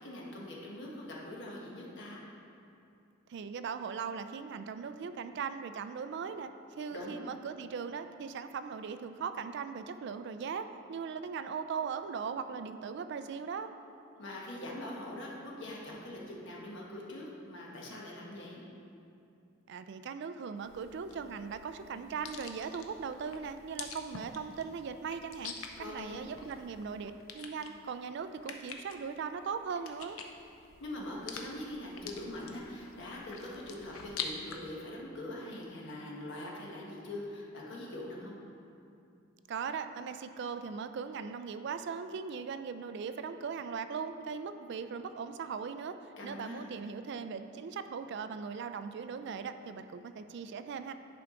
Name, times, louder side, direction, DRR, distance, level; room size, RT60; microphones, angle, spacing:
voice 1, 0.0-2.2 6.9-7.3 14.2-18.6 25.8-26.3 30.8-38.4 46.2-46.7, left 1 dB, 60° left, -3 dB, 1.3 m, -43 dB
voice 2, 3.3-6.5 6.8-13.7 19.7-25.5 25.8-30.2 39.5-45.9 46.2-50.9, right 6 dB, 55° right, 10 dB, 0.3 m, -39 dB
sound 1, 20.6-34.6, left 6 dB, 85° left, 0.6 m, -46 dB
10.5 x 4.6 x 3.8 m, 2.6 s
head